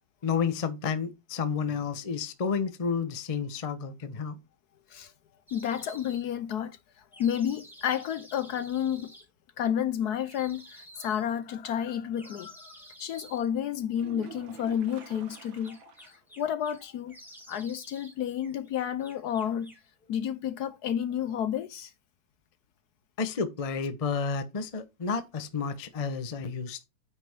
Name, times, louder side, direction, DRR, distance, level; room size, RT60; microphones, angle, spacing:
voice 1, 0.2-4.4 23.2-26.8, left 5 dB, 35° left, 0.5 m, -31 dB
voice 2, 5.5-6.8 7.2-9.1 9.6-17.2 17.5-19.7 20.1-21.9, left 9 dB, 65° left, 1.1 m, -31 dB
sound 1, 5.5-6.2 7.1-9.2 10.2-11.3 12.1-13.5 15.0-16.8 17.1-18.2 18.4-19.9, right 1 dB, ahead, 3.5 m, -51 dB
sound 2, 13.9-16.2 16.5-16.6 17.1-17.2 20.9-21.0, right 8 dB, 90° right, 1.8 m, -48 dB
9.4 x 5.8 x 3.5 m
omnidirectional pair, 2.1 m